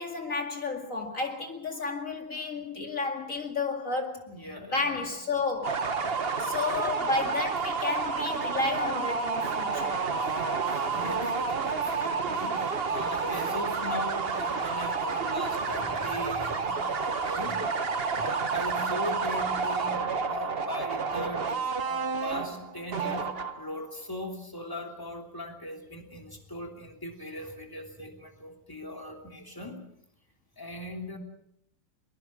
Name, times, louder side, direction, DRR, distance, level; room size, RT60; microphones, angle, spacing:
voice 1, 0.0-4.3 4.7-5.8 6.4-10.0, left 3 dB, 40° left, 4 dB, 2.5 m, -32 dB
voice 2, 4.3-5.1 6.3-6.4 10.2-17.6 18.1-29.8 30.6-31.2, left 1 dB, 10° left, 2 dB, 3.0 m, -39 dB
sound 1, 5.6-23.8, right 5 dB, 35° right, 1.0 m, -30 dB
23.0 x 20.5 x 6.2 m, 0.76 s
omnidirectional pair, 2.4 m